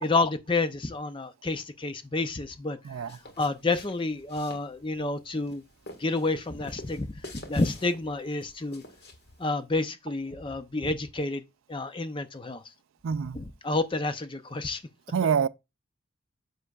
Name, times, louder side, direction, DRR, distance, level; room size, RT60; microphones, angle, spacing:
voice 1, 0.0-2.8 3.4-5.6 6.0-7.1 7.5-8.8 9.4-11.4 11.7-12.6 13.4-14.8, left 3 dB, 25° left, 0.5 m, -29 dB
voice 2, 2.8-3.2 13.0-13.4 15.1-15.5, right 7 dB, 70° right, 0.4 m, -26 dB
sound 1, 2.9-9.5, left 2 dB, 50° left, 1.6 m, -49 dB
9.8 x 6.4 x 2.3 m
head